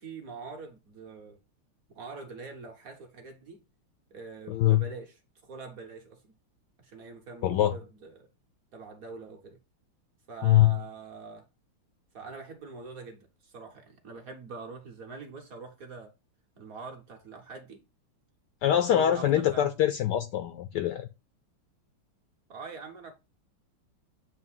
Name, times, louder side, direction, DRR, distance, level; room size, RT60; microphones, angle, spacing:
voice 1, 0.0-1.4 1.9-3.6 4.1-6.3 6.8-8.3 8.7-9.6 10.3-11.5 12.1-16.1 16.6-17.8 18.7-19.7 22.5-23.1, right 4 dB, 55° right, 1.0 m, -44 dB
voice 2, 4.5-4.8 7.4-7.7 10.4-10.7 18.6-21.1, left 12 dB, 90° left, 0.9 m, -23 dB
7.8 x 2.7 x 5.5 m
omnidirectional pair, 2.4 m